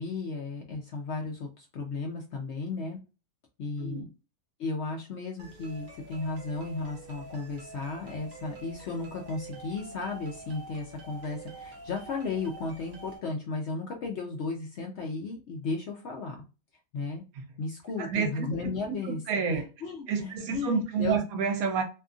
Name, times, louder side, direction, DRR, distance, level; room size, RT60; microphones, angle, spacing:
voice 1, 0.0-3.0 3.6-4.1 4.6-16.4 16.9-17.2 17.6-19.2 19.5-21.2, left 3 dB, 65° left, 0.7 m, -35 dB
sound 1, 5.4-13.2, right 3 dB, 60° right, 1.2 m, -47 dB
voice 2, 18.0-18.5 18.9-19.6 20.1-21.8, right 6 dB, 75° right, 1.1 m, -29 dB
2.7 x 2.4 x 2.4 m
omnidirectional pair, 1.6 m